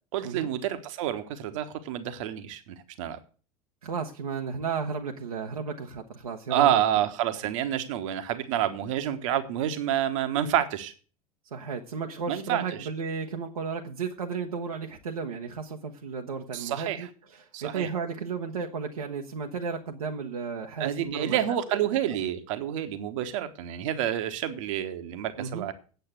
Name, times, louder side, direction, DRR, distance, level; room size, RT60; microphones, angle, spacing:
voice 1, 0.1-3.2 6.5-10.9 12.3-12.6 16.5-17.1 17.5-17.9 20.8-25.7, right 11 dB, 60° right, 1.2 m, -28 dB
voice 2, 3.8-6.8 7.3-7.4 8.5-8.6 10.4-10.5 11.5-21.4 21.7-22.2 25.4-25.7, right 5 dB, 75° right, 1.0 m, -34 dB
9.2 x 7.6 x 8.0 m
figure-of-eight pair, 75°, 19 cm